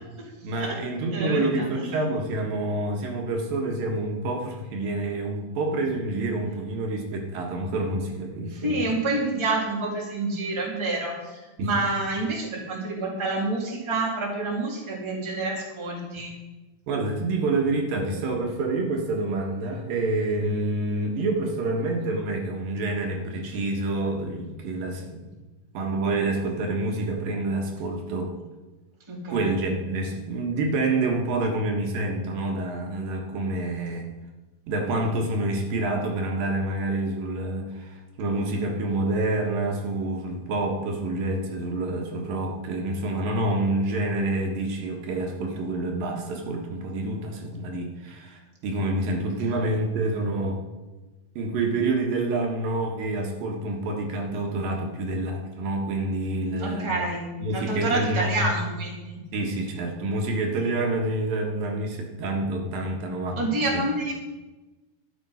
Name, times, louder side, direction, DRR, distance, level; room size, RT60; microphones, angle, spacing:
voice 1, 0.4-8.9 11.6-11.7 16.9-25.3 25.7-28.3 29.3-34.1 34.7-50.6 51.4-57.0 57.4-58.5 59.3-63.8, right 2 dB, 70° right, 1 dB, 3.1 m, -27 dB
voice 2, 1.1-1.9 8.5-16.3 29.1-29.5 56.6-59.0 63.4-64.1, right 2 dB, 10° right, -2 dB, 2.1 m, -28 dB
13.0 x 9.9 x 5.6 m, 1.2 s
omnidirectional pair, 4.4 m